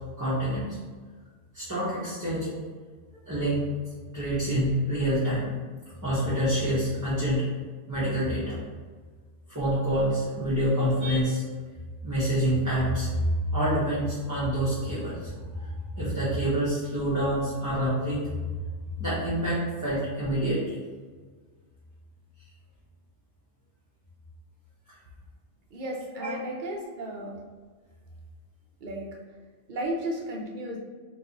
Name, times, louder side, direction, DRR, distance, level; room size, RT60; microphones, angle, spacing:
voice 1, 0.2-0.7 1.5-2.5 3.3-3.6 4.1-5.5 6.0-7.4 7.9-8.6 9.5-11.4 12.0-18.5 18.9-20.8 26.2-26.3, equal, 20° right, -11 dB, 0.7 m, -27 dB
voice 2, 25.7-27.3 28.8-29.1 29.7-30.8, right 1 dB, 55° right, -1 dB, 0.6 m, -34 dB
3.9 x 2.6 x 2.8 m, 1.5 s
omnidirectional pair, 1.3 m